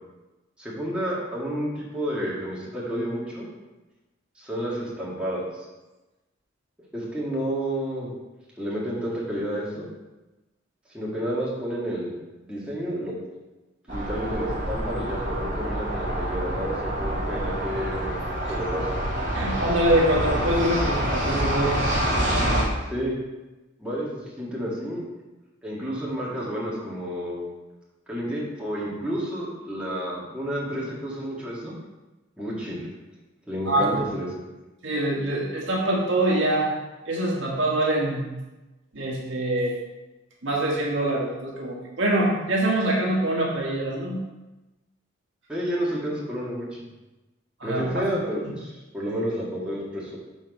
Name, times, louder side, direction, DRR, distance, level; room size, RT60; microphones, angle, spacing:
voice 1, 0.6-3.5 4.4-5.4 6.9-8.1 8.6-9.9 10.9-12.1 12.5-13.1 13.9-18.2 18.5-18.9 22.9-23.1 23.8-25.0 25.6-27.5 28.1-31.7 32.4-32.9 33.5-34.3 45.5-46.7 47.6-50.2, equal, 5° right, -7 dB, 1.8 m, -30 dB
sound 1, 13.9-22.6, right 1 dB, 45° right, 2.0 m, -27 dB
voice 2, 19.3-21.8 33.6-34.0 34.8-36.7 37.1-38.3 38.9-39.7 40.4-44.2 47.6-48.1, right 1 dB, 70° right, -3 dB, 1.5 m, -24 dB
6.1 x 4.5 x 6.0 m, 1.1 s
head